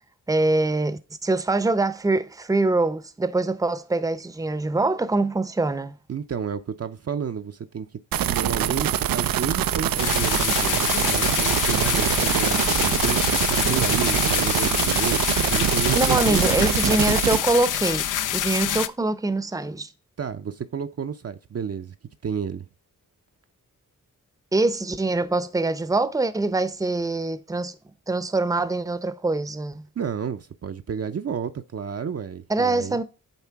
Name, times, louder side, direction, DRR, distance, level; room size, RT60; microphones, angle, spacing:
voice 1, 0.3-6.0 15.9-19.9 24.5-27.7 28.1-29.9 32.5-33.0, right 2 dB, 10° right, 0.7 m, -24 dB
voice 2, 6.1-7.9 8.2-16.4 20.2-22.0 22.2-22.7 30.0-33.0, right 7 dB, 45° right, 0.6 m, -31 dB
sound 1, 8.1-17.4, right 10 dB, 90° right, 0.5 m, -24 dB
sound 2, 10.0-18.9, left 10 dB, 65° left, 0.5 m, -26 dB
8.4 x 3.3 x 4.6 m
cardioid pair, 50°, 33 cm